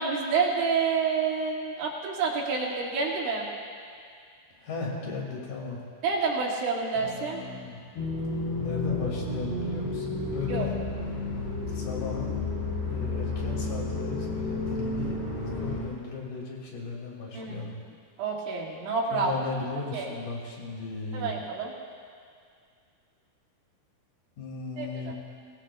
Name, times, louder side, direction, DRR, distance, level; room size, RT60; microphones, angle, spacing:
voice 1, 0.0-3.5 6.0-7.4 10.5-10.7 17.3-17.7 18.2-19.3 19.9-20.1 21.1-21.7 24.8-25.1, right 5 dB, 75° right, -5 dB, 4.5 m, -28 dB
voice 2, 4.6-5.8 7.0-7.8 8.6-10.7 11.7-12.5 12.8-17.8 19.1-21.3 24.4-25.1, left 4 dB, 50° left, -2 dB, 3.5 m, -36 dB
sound 1, 8.0-15.8, left 2 dB, 75° left, 5.8 m, -31 dB
24.5 x 19.5 x 2.4 m, 2.2 s
omnidirectional pair, 5.4 m